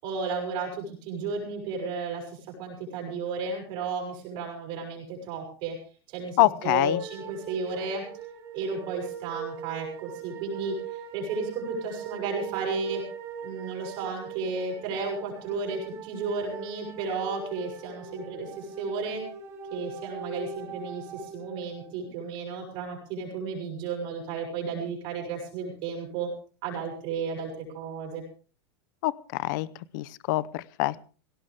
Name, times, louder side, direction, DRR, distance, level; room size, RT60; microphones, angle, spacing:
voice 1, 0.0-5.8 6.1-8.1 8.5-13.0 13.4-19.2 19.7-26.3 26.6-28.2, right 4 dB, 35° right, 0 dB, 7.1 m, -33 dB
voice 2, 6.4-7.0 29.0-29.7 29.9-31.0, left 18 dB, 45° left, 20 dB, 0.7 m, -25 dB
sound 1, 6.8-21.9, right 5 dB, 20° right, 3.2 m, -41 dB
18.0 x 18.0 x 3.6 m, 0.38 s
supercardioid pair, 170°, 14 cm